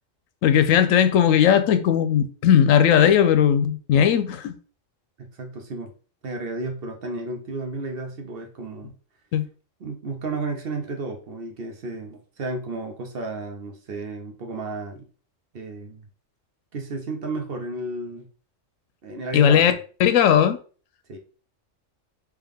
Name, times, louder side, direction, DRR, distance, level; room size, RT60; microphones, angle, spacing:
voice 1, 0.4-4.5 9.3-9.4 19.3-19.7 20.0-20.6, left 9 dB, 85° left, 1.0 m, -17 dB
voice 2, 5.2-5.9 6.2-8.9 9.8-15.1 15.5-16.1 16.7-18.3 19.0-19.8 21.1-21.2, right 3 dB, 55° right, 0.8 m, -33 dB
3.5 x 3.2 x 3.4 m
omnidirectional pair, 1.3 m